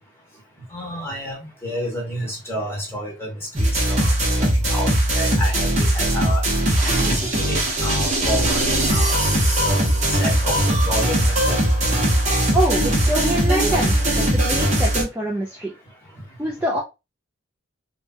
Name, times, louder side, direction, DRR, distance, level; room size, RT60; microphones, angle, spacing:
voice 1, 0.7-4.1 4.4-4.9 5.1-6.4 6.8-8.6 8.9-10.6 10.8-11.6, equal, 10° left, -2 dB, 1.1 m, -30 dB
sound 1, 3.6-15.0, right 1 dB, 35° right, 0.9 m, -20 dB
voice 2, 12.5-15.7 16.4-16.8, right 1 dB, 5° right, -3 dB, 0.3 m, -25 dB
3.2 x 2.2 x 2.6 m, 0.26 s
head